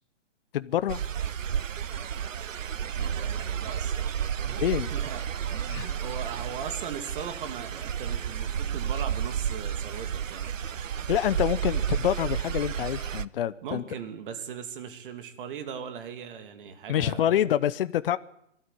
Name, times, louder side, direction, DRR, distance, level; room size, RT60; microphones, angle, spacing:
voice 1, 0.5-1.0 4.6-4.9 5.7-5.9 11.1-13.8 16.9-18.2, left 11 dB, 50° left, 15 dB, 0.8 m, -26 dB
sound 1, 0.9-13.2, right 8 dB, 85° right, 0.8 m, -31 dB
voice 2, 3.0-4.1 4.4-4.6 4.9-5.2 5.5-10.5 13.6-17.4, right 7 dB, 45° right, 8 dB, 2.6 m, -39 dB
22.5 x 13.5 x 8.6 m, 0.77 s
hypercardioid pair, 140°, 37 cm